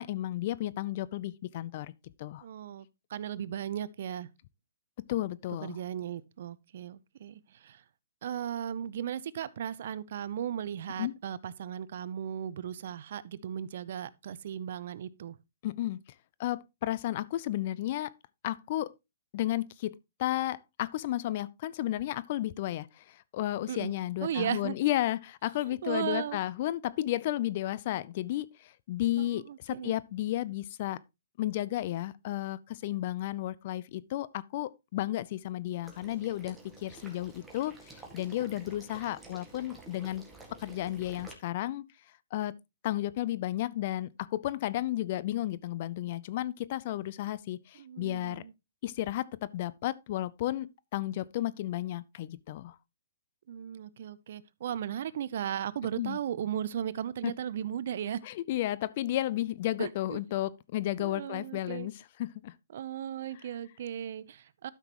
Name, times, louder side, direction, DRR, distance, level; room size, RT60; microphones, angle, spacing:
voice 1, 0.0-1.9 2.2-2.4 5.1-5.8 11.0-11.1 15.6-16.0 16.4-18.1 18.4-18.9 19.3-31.0 31.4-36.6 36.8-40.3 40.6-41.8 42.3-42.5 42.8-48.4 48.8-52.8 56.0-56.2 57.2-57.3 58.2-62.5, left 14 dB, 45° left, 0.5 m, -33 dB
voice 2, 2.4-4.3 5.6-7.8 8.2-15.4 23.7-23.9 24.2-24.7 25.8-26.4 29.2-29.9 47.7-48.5 53.5-58.2 59.8-60.2 61.0-61.9 62.7-64.7, right 9 dB, 60° right, 0.6 m, -36 dB
Water / Liquid, 35.8-41.3, right 3 dB, 5° right, 1.8 m, -51 dB
12.0 x 6.0 x 3.0 m
hypercardioid pair, 145°, 0 cm